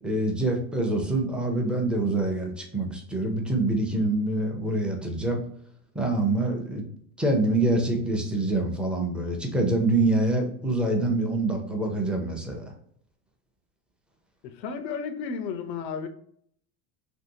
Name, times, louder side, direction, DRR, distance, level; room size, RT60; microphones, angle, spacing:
voice 1, 0.0-5.4 5.9-6.8 7.2-12.7, right 2 dB, ahead, 1 dB, 0.5 m, -25 dB
voice 2, 14.4-16.1, left 6 dB, 85° left, 9 dB, 0.6 m, -33 dB
2.9 x 2.7 x 2.7 m, 0.64 s
supercardioid pair, 100°, 50 cm